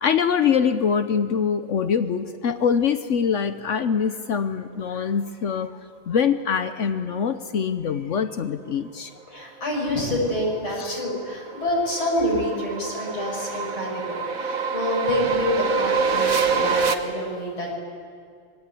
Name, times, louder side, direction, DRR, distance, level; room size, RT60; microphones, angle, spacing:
voice 1, 0.0-5.8 6.1-9.1 10.8-11.0, left 7 dB, 85° left, 10 dB, 0.6 m, -24 dB
voice 2, 9.3-17.7, left 1 dB, 70° left, -2 dB, 7.4 m, -27 dB
sound 1, 10.4-16.9, right 5 dB, 45° right, 1.5 m, -26 dB
25.5 x 22.0 x 8.4 m, 2.3 s
omnidirectional pair, 2.4 m